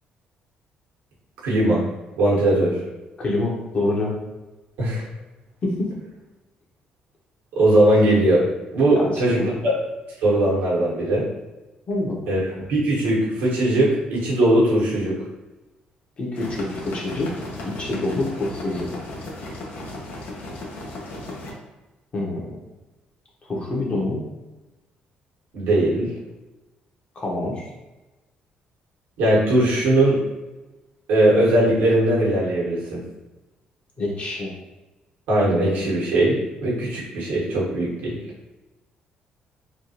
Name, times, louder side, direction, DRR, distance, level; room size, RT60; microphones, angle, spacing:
voice 1, 1.4-1.9 2.2-2.8 4.8-5.1 7.6-8.5 8.7-9.7 10.2-11.2 12.3-15.2 25.5-26.1 29.2-30.2 31.1-33.0 35.3-38.2, right 1 dB, 90° right, -5 dB, 1.2 m, -19 dB
voice 2, 3.2-4.2 5.6-5.9 8.9-9.5 11.9-12.1 16.2-17.3 17.6-18.9 22.1-22.6 23.4-24.2 27.1-27.6 34.0-34.5, left 2 dB, 40° left, -3 dB, 1.0 m, -26 dB
sound 1, 16.3-21.5, left 2 dB, 70° left, 0.7 m, -35 dB
3.5 x 2.3 x 2.8 m, 1.1 s
cardioid pair, 80°, 3 cm